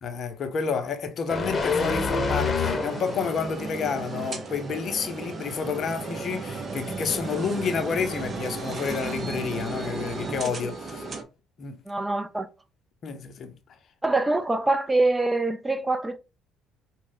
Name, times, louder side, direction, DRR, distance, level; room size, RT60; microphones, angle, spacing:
voice 1, 0.0-11.0 11.6-11.8 13.0-13.8, left 5 dB, 50° left, 0.7 m, -30 dB
sound 1, 1.3-3.4 3.8-4.0, left 4 dB, 30° left, 0.9 m, -26 dB
sound 2, 2.6-11.2, right 3 dB, 40° right, 0.9 m, -34 dB
voice 2, 11.9-12.5 14.0-16.2, right 2 dB, 15° right, 0.6 m, -24 dB
4.8 x 2.2 x 3.9 m
hypercardioid pair, 55°, 0 cm